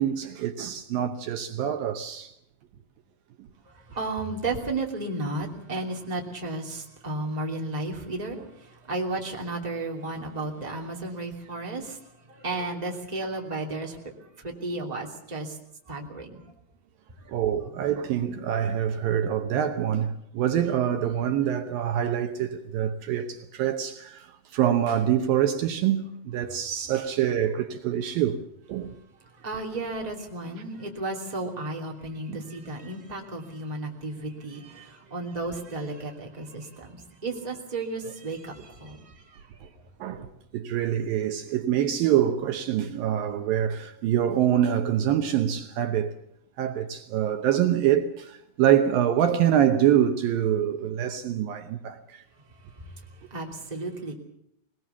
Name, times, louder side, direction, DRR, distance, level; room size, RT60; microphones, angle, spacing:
voice 1, 0.0-2.3 17.3-28.4 28.7-28.9 32.3-32.4 39.6-39.7 40.0-46.1 46.6-52.2, right 10 dB, 75° right, 2.6 m, -25 dB
voice 2, 3.7-12.0 12.3-15.6 15.9-16.4 17.2-17.3 29.4-39.4 52.8-52.9 53.3-54.1, right 2 dB, 10° right, 2.4 m, -33 dB
21.0 x 20.0 x 7.0 m
omnidirectional pair, 4.5 m